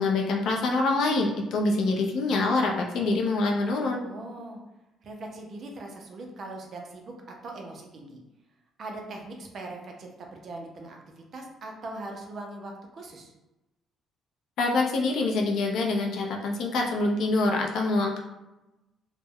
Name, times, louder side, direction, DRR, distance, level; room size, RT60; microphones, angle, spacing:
voice 1, 0.0-4.0 14.6-18.2, left 3 dB, 60° left, 1 dB, 0.4 m, -25 dB
voice 2, 4.0-4.6 5.0-7.1 7.4-8.2 8.8-13.3, right 2 dB, 40° right, 1 dB, 0.4 m, -40 dB
2.2 x 2.0 x 3.4 m, 0.99 s
cardioid pair, 170°, 0 cm